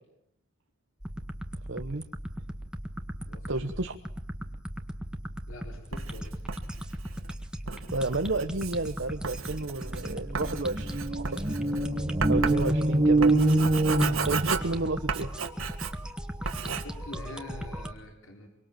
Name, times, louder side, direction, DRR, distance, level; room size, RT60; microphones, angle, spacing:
sound 1, 1.0-17.9, equal, 5° right, 1.7 m, -38 dB
voice 1, 1.7-2.0 3.5-4.0 7.9-11.4 12.3-13.4 14.2-15.3, right 2 dB, 60° right, 6 dB, 1.1 m, -31 dB
voice 2, 3.2-3.7 5.5-6.4 16.8-18.5, left 2 dB, 75° left, 3 dB, 4.2 m, -45 dB
Writing, 5.9-16.2 16.4-16.8, right 5 dB, 80° right, 2.0 m, -35 dB
sound 2, 9.5-9.6 9.8-14.9, right 2 dB, 25° right, 1.5 m, -25 dB
25.5 x 24.5 x 7.6 m, 0.68 s
head